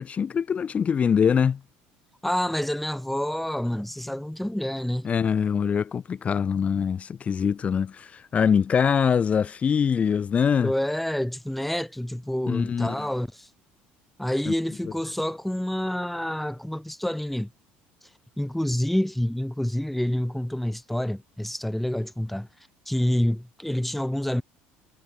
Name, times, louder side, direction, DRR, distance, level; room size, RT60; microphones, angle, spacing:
voice 1, 0.0-1.6 5.0-10.7 12.5-13.1 14.5-14.6, left 7 dB, 35° left, 1.1 m, -23 dB
voice 2, 2.2-5.1 10.6-13.5 14.2-17.5 18.0-18.1 18.4-22.5 22.9-24.4, left 1 dB, 5° left, 2.7 m, -28 dB
supercardioid pair, 105°, 4 cm